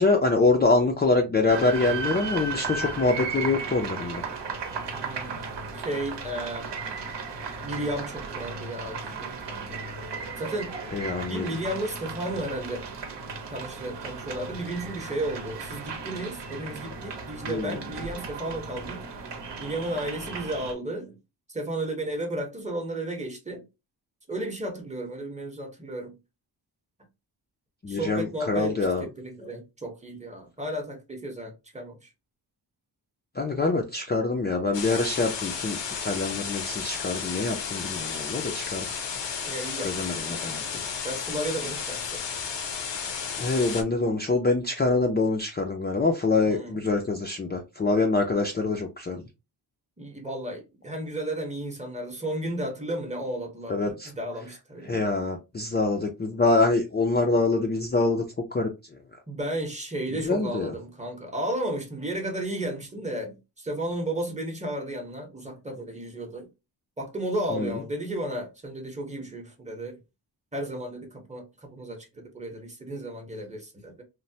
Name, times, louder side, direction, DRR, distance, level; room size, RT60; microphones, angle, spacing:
voice 1, 0.0-4.2 10.9-11.5 17.5-17.8 27.8-29.1 33.4-38.9 39.8-40.8 43.4-49.2 53.7-54.1 54.9-58.2 58.5-58.7 60.2-60.7 67.5-67.8, left 3 dB, 25° left, 0.4 m, -25 dB
sound 1, 1.5-20.7, right 4 dB, 75° right, 0.8 m, -35 dB
voice 2, 4.9-5.4 5.7-6.7 7.6-9.8 10.4-10.7 11.3-12.9 13.5-19.0 19.6-21.2 21.5-23.7 24.3-26.1 27.9-28.7 29.0-32.1 39.4-40.7 41.0-42.2 46.5-46.8 50.0-55.0 59.3-66.5 67.0-69.9 70.5-74.0, right 1 dB, 15° right, 0.7 m, -33 dB
sound 2, 34.7-43.8, left 6 dB, 80° left, 0.7 m, -33 dB
3.1 x 2.1 x 2.6 m
wide cardioid pair, 170°, 42 cm